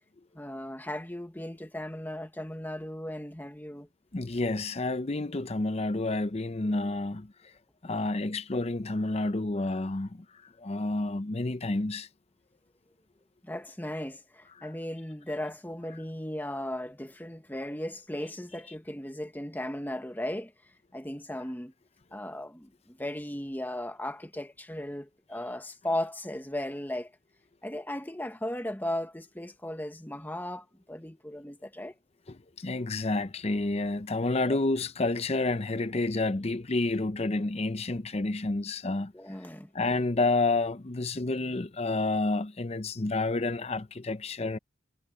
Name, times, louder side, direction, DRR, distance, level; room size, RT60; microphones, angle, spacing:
voice 1, 0.3-3.9 13.4-20.5 20.9-21.7 22.1-27.1 27.6-31.9 34.5-34.6 39.1-39.7, left 1 dB, 10° left, 1.3 m, -36 dB
voice 2, 4.1-7.3 7.8-10.2 10.6-12.1 32.6-39.1 39.7-44.6, left 2 dB, 30° left, 0.6 m, -29 dB
head